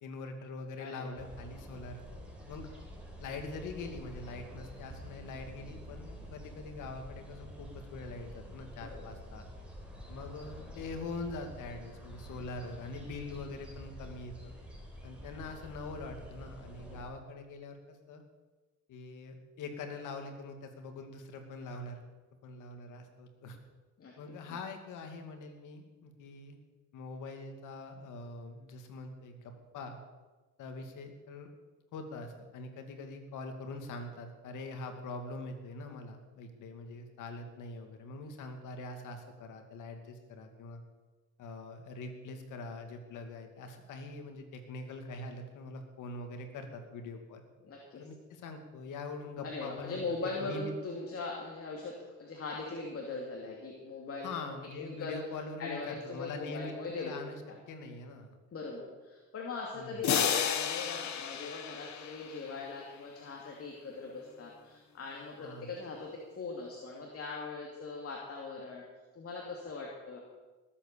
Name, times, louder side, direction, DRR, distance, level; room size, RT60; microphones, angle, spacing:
voice 1, 0.0-2.0 2.5-2.7 3.2-9.4 10.1-14.5 15.0-18.2 18.9-22.0 22.4-23.6 24.2-26.6 26.9-30.0 30.6-31.5 31.9-40.8 41.4-47.4 47.9-50.0 50.4-50.7 54.2-57.4 57.7-58.4 59.7-60.2 65.4-65.7, left 3 dB, 85° left, 5 dB, 2.4 m, -43 dB
voice 2, 0.8-1.2 8.8-9.1 24.0-24.1 47.6-48.0 49.4-55.2 55.6-57.1 58.5-68.8 69.1-70.2, left 3 dB, 50° left, -1 dB, 2.8 m, -40 dB
sound 1, 1.1-17.0, equal, 5° right, 4.6 m, -48 dB
sound 2, 60.0-62.7, left 8 dB, 65° left, 1.4 m, -32 dB
20.0 x 8.6 x 6.9 m, 1.2 s
cardioid pair, 90°, 30 cm